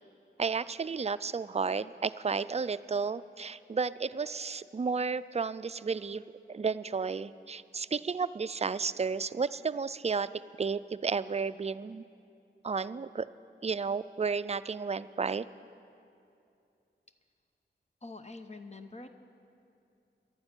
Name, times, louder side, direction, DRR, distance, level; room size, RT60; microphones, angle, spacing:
voice 1, 0.4-10.3 10.6-12.0 12.6-13.3 13.6-15.4, right 5 dB, 30° right, 14 dB, 0.4 m, -32 dB
voice 2, 18.0-19.1, left 3 dB, 35° left, 8 dB, 0.8 m, -45 dB
11.5 x 9.7 x 8.9 m, 2.6 s
wide cardioid pair, 45°, 20 cm